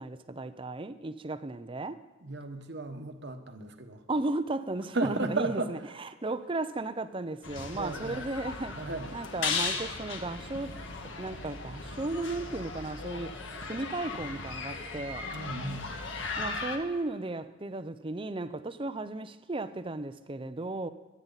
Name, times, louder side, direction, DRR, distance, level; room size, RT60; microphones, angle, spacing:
voice 1, 0.0-2.0 4.1-8.8 9.1-10.8 11.2-13.3 13.6-15.3 16.4-20.9, right 2 dB, 25° right, 11 dB, 0.6 m, -35 dB
voice 2, 2.2-4.0 4.9-5.7 7.7-8.2 8.7-9.1 15.3-15.9, right 3 dB, 55° right, 6 dB, 1.3 m, -34 dB
sound 1, 7.4-16.8, left 4 dB, 60° left, 1.6 m, -37 dB
24.0 x 9.6 x 4.1 m, 1.3 s
head